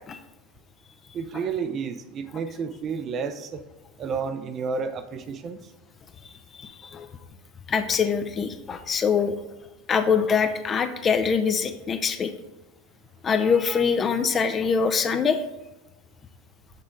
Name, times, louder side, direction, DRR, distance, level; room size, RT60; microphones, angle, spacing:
voice 1, 1.1-3.6 4.0-5.7, right 5 dB, 35° right, 10 dB, 0.6 m, -31 dB
voice 2, 6.6-7.1 7.7-9.4 9.9-12.3 13.2-15.4, left 6 dB, 30° left, 9 dB, 0.6 m, -24 dB
6.5 x 5.8 x 3.8 m, 1.0 s
figure-of-eight pair, 80°, 0 cm